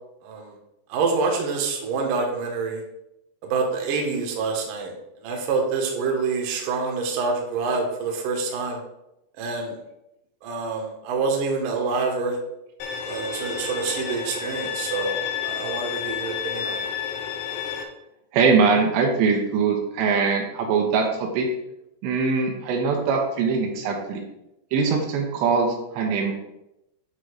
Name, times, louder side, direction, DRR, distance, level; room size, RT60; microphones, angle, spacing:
voice 1, 0.2-0.5 0.9-2.8 3.4-4.9 5.2-8.8 9.4-9.8 10.4-12.4 13.0-16.9, right 4 dB, 65° right, 1 dB, 2.3 m, -26 dB
Bowed string instrument, 12.8-17.8, left 8 dB, 80° left, 2.9 m, -30 dB
voice 2, 18.3-21.5 22.0-24.2 24.7-26.3, right 5 dB, 80° right, 2 dB, 3.2 m, -22 dB
9.3 x 3.7 x 5.0 m, 0.87 s
omnidirectional pair, 5.0 m